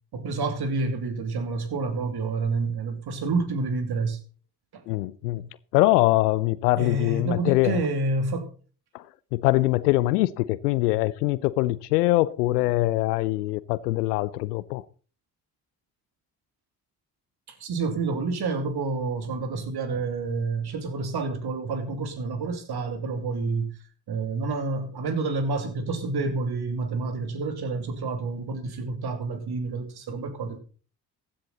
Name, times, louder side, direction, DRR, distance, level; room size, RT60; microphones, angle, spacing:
voice 1, 0.1-4.2 4.7-4.8 6.8-8.5 17.5-23.7 24.1-30.6, right 3 dB, 55° right, 2.8 m, -29 dB
voice 2, 4.9-5.5 5.7-7.8 8.9-9.0 9.3-14.8, left 17 dB, 85° left, 0.7 m, -23 dB
15.0 x 10.5 x 4.0 m
hypercardioid pair, 45°, 46 cm